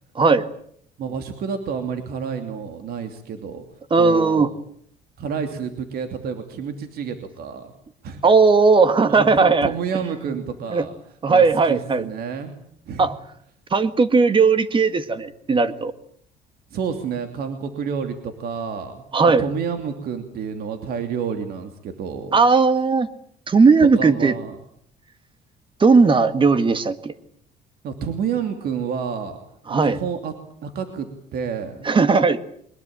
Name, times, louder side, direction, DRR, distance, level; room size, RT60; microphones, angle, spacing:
voice 1, 0.2-0.5 3.9-4.5 8.2-9.7 10.7-10.8 11.2-12.1 13.0-13.1 13.7-15.9 19.1-19.4 22.3-23.1 23.5-24.3 25.8-27.1 29.7-30.0 31.9-32.5, right 4 dB, 30° right, 12 dB, 1.8 m, -17 dB
voice 2, 1.0-3.7 3.9-4.5 5.2-7.7 8.0-8.2 9.1-10.9 11.3-12.6 12.8-13.1 16.7-19.0 19.4-22.4 24.0-24.7 27.8-29.4 29.8-30.3 30.6-31.9, right 6 dB, 65° right, 7 dB, 2.9 m, -29 dB
23.0 x 21.0 x 8.9 m, 0.67 s
cardioid pair, 110°, 17 cm